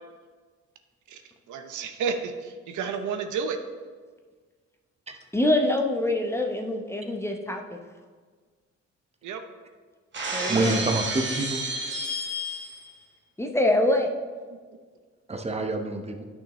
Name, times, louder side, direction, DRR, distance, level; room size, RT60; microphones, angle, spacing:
voice 1, 1.5-3.6 9.2-9.4, right 6 dB, 75° right, 6 dB, 0.8 m, -31 dB
voice 2, 5.3-7.8 10.3-10.8 13.4-14.1, left 1 dB, 10° left, 2 dB, 0.8 m, -25 dB
Shatter, 10.1-12.9, right 1 dB, 40° right, 1.3 m, -31 dB
voice 3, 10.5-11.6 15.3-16.2, right 2 dB, 20° right, 4 dB, 0.9 m, -27 dB
9.9 x 6.0 x 3.1 m, 1.5 s
cardioid pair, 90°, 30 cm